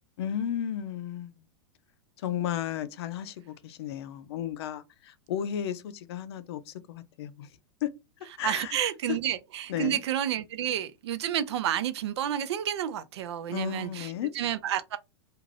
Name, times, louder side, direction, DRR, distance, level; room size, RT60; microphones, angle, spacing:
voice 1, 0.2-1.5 2.2-7.5 7.8-7.9 8.4-8.8 9.1-9.2 9.7-10.0 13.5-14.3, left 10 dB, 65° left, 0.5 m, -33 dB
voice 2, 8.4-15.0, right 10 dB, 70° right, 0.5 m, -30 dB
2.5 x 2.5 x 3.2 m
hypercardioid pair, 120°, 14 cm